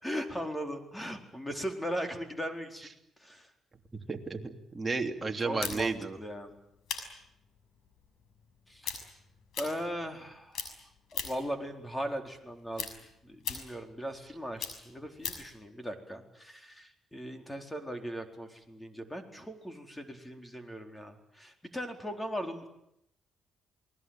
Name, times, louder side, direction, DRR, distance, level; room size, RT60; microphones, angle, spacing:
voice 1, 0.0-2.9 3.2-3.5 5.4-6.5 8.7-9.0 9.6-10.7 11.1-22.7, equal, 10° left, 5 dB, 4.3 m, -38 dB
voice 2, 3.9-6.2, right 4 dB, 20° right, 3 dB, 3.2 m, -33 dB
sound 1, 5.6-10.3 10.5-11.5 11.9-15.5, left 7 dB, 75° left, 6.1 m, -40 dB
28.0 x 20.5 x 9.1 m, 0.80 s
cardioid pair, 90°, 0 cm